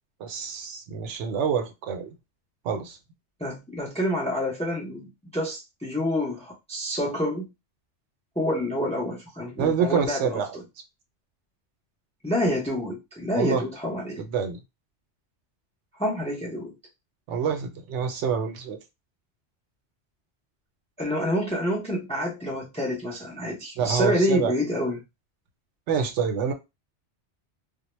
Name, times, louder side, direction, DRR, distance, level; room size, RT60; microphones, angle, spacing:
voice 1, 0.2-2.1 2.6-3.0 9.6-10.5 13.3-13.6 14.2-14.6 17.3-18.8 23.8-24.5 25.9-26.5, right 6 dB, 80° right, 0.9 m, -26 dB
voice 2, 3.4-7.5 8.4-10.4 12.2-14.2 16.0-16.7 21.0-25.0, equal, 10° left, 0.4 m, -28 dB
2.2 x 2.0 x 3.0 m
omnidirectional pair, 1.2 m